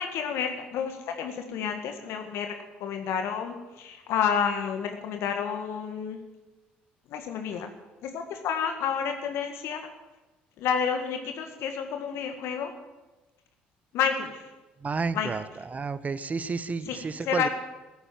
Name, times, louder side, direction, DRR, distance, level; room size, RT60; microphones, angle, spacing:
voice 1, 0.0-2.6 2.8-6.2 7.1-7.7 8.0-9.8 10.6-12.7 13.9-14.4 15.1-15.3 16.9-17.5, left 7 dB, 65° left, 6 dB, 1.7 m, -30 dB
voice 2, 14.8-15.4 15.7-17.5, right 4 dB, 30° right, 15 dB, 1.0 m, -30 dB
14.5 x 10.5 x 8.8 m, 1.1 s
hypercardioid pair, 55°, 5 cm